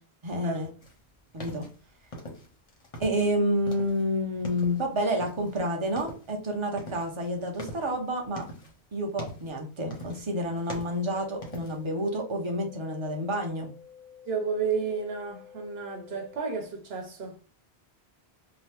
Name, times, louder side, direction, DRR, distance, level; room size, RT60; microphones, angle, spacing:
voice 1, 0.2-0.7 1.3-1.7 3.0-8.4 8.9-13.7, equal, 30° right, 0.7 m, -29 dB
sound 1, 0.8-3.3 3.6-5.6 5.9-6.4 6.8-8.8 9.1-9.6 9.9-10.3 10.6-11.9, left 1 dB, 40° left, 0.7 m, -42 dB
sound 2, 10.7-16.7, left 8 dB, 85° left, 0.8 m, -51 dB
voice 2, 14.3-17.3, right 5 dB, 70° right, 1.0 m, -32 dB
2.9 x 2.0 x 3.3 m
omnidirectional pair, 1.1 m